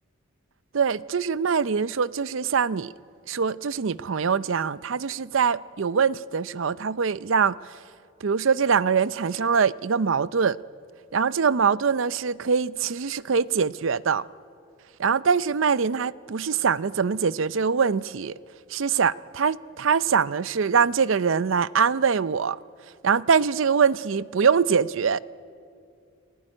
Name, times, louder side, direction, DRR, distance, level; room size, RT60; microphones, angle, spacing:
voice 1, 0.7-2.9 3.3-7.6 8.2-10.6 11.1-14.2 15.0-18.4 18.7-22.6 23.0-25.2, right 6 dB, 70° right, 0.5 m, -23 dB
30.0 x 19.0 x 9.9 m
head